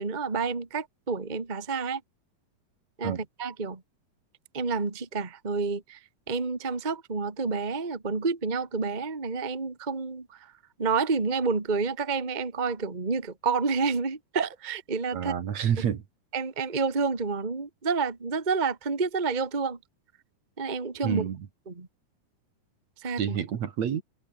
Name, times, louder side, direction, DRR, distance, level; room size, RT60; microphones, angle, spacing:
voice 1, 0.0-2.0 3.0-3.8 4.5-6.0 6.3-10.5 10.8-15.3 16.3-19.8 20.6-21.2 21.7-21.9 23.0-23.4, right 4 dB, 20° right, 1.6 m, -29 dB
voice 2, 15.1-16.0 21.0-21.5 23.2-24.0, right 8 dB, 60° right, 3.0 m, -28 dB
omnidirectional pair, 3.7 m